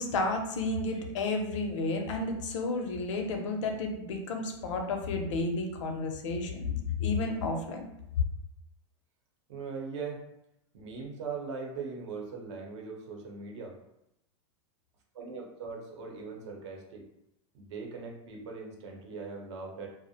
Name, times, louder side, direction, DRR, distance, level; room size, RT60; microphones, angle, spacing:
voice 1, 0.0-7.8, left 3 dB, 75° left, 4 dB, 0.5 m, -32 dB
voice 2, 9.5-10.2 10.7-13.7 15.2-17.0 17.5-19.9, right 4 dB, 65° right, 0 dB, 0.7 m, -40 dB
2.4 x 2.0 x 2.7 m, 0.83 s
supercardioid pair, 160°, 16 cm